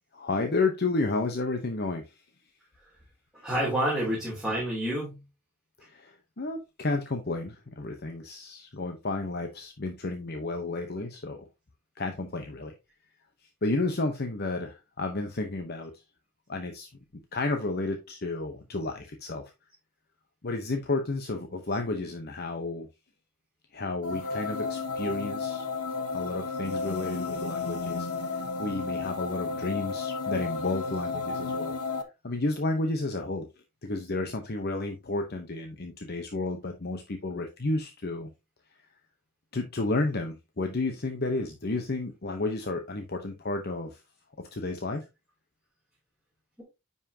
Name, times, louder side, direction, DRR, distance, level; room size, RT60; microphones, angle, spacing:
voice 1, 0.1-2.1 5.8-11.5 12.0-12.7 13.6-15.9 16.5-16.9 17.3-19.5 20.4-22.9 23.7-25.7 26.1-28.1 28.3-31.7 32.2-33.5 33.8-38.3 39.5-44.0 44.4-45.0, left 2 dB, 45° left, 5 dB, 0.9 m, -31 dB
voice 2, 3.4-5.2 24.3-24.4, right 1 dB, ahead, -7 dB, 2.9 m, -28 dB
sound 1, 24.0-32.0, left 4 dB, 85° left, 1.1 m, -32 dB
9.7 x 5.6 x 2.8 m, 0.24 s
head